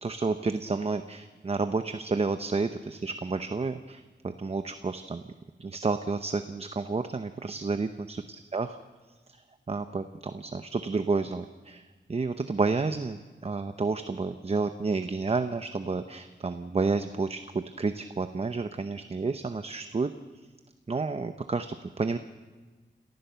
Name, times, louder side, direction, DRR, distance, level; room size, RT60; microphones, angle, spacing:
voice 1, 0.0-5.2 5.6-8.2 8.5-8.8 9.7-11.8 12.1-20.1 20.9-22.2, right 4 dB, 30° right, 9 dB, 0.7 m, -30 dB
28.5 x 14.5 x 6.8 m, 1.3 s
wide cardioid pair, 110°, 19 cm